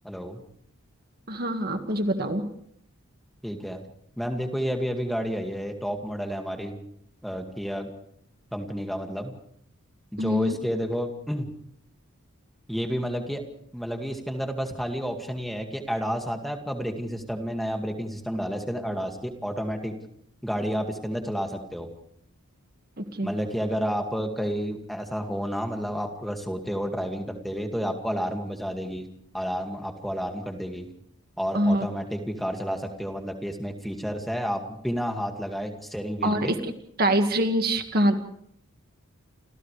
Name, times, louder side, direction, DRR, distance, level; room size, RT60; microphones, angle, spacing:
voice 1, 0.0-0.4 3.4-3.8 4.2-6.7 7.2-7.9 8.5-9.4 10.1-11.5 12.7-13.4 13.7-19.9 20.4-21.9 23.2-29.1 29.3-30.9 31.4-36.5, equal, ahead, 3 dB, 2.2 m, -30 dB
voice 2, 1.3-2.5 10.2-10.6 23.0-23.3 31.5-31.9 36.2-36.7 37.0-38.2, right 1 dB, 45° right, 5 dB, 1.9 m, -24 dB
29.5 x 27.0 x 3.4 m, 0.69 s
head